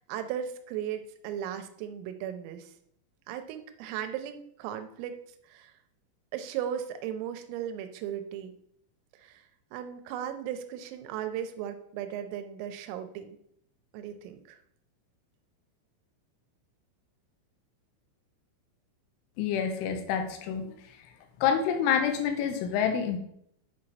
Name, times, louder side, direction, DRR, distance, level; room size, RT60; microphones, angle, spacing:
voice 1, 0.1-2.7 3.3-5.2 5.5-5.7 6.3-8.5 9.2-9.4 9.7-13.4 13.9-14.6, right 9 dB, 90° right, 8 dB, 3.3 m, -36 dB
voice 2, 19.4-20.7 21.4-23.2, left 7 dB, 75° left, 5 dB, 3.2 m, -27 dB
8.7 x 4.6 x 5.6 m, 0.70 s
omnidirectional pair, 5.9 m